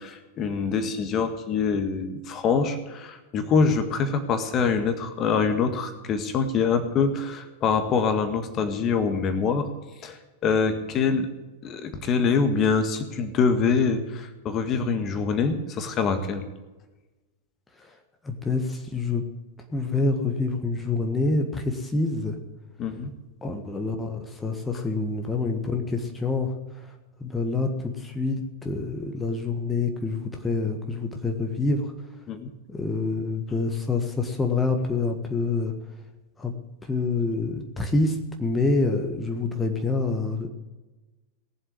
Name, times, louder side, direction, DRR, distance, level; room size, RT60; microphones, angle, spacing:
voice 1, 0.0-9.7 10.0-11.3 11.6-16.5 22.8-23.1 32.3-32.5, left 5 dB, 30° left, 8 dB, 1.7 m, -25 dB
voice 2, 18.2-19.2 19.7-22.4 23.4-26.5 26.8-26.9 27.2-31.9 32.7-35.7 36.4-36.5 36.8-40.5, left 3 dB, 10° left, 4 dB, 1.6 m, -27 dB
18.5 x 7.6 x 9.6 m, 1.1 s
figure-of-eight pair, 90°, 0 cm